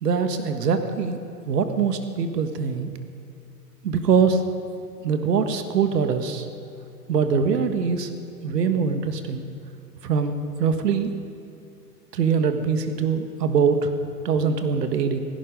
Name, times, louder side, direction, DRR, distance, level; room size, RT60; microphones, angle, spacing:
voice 1, 0.0-1.2 1.5-2.9 3.8-4.4 5.0-6.4 7.1-8.1 8.4-9.4 10.0-11.1 12.1-13.9 14.2-15.2, right 6 dB, 75° right, 8 dB, 1.7 m, -23 dB
17.0 x 16.0 x 5.3 m, 2.7 s
hypercardioid pair, 120°, 49 cm